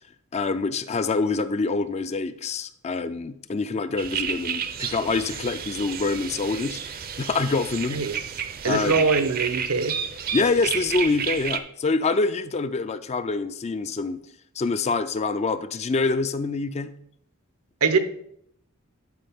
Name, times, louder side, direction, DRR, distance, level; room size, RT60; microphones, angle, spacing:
voice 1, 0.3-6.8 7.2-8.0 8.6-9.0 10.3-14.2 14.6-16.9, left 3 dB, 30° left, 12 dB, 0.4 m, -26 dB
sound 1, 4.0-11.6, right 7 dB, 45° right, 0.5 m, -31 dB
voice 2, 8.6-10.0 17.8-18.0, right 4 dB, 85° right, 9 dB, 0.8 m, -22 dB
11.5 x 4.7 x 3.5 m, 0.72 s
head